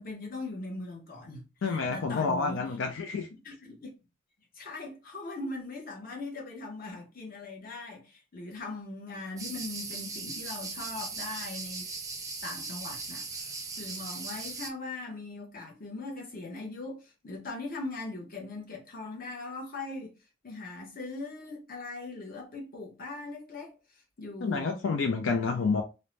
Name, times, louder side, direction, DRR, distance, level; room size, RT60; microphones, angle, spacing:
voice 1, 0.0-2.7 3.4-3.9 4.5-11.9 12.4-20.1 20.4-23.7 24.2-24.8 25.4-25.7, left 2 dB, 50° left, 0.8 m, -40 dB
voice 2, 1.6-3.3 24.4-25.8, left 4 dB, 85° left, 0.4 m, -29 dB
sound 1, 9.4-14.7, right 4 dB, 20° right, 0.4 m, -38 dB
2.6 x 2.1 x 3.1 m
head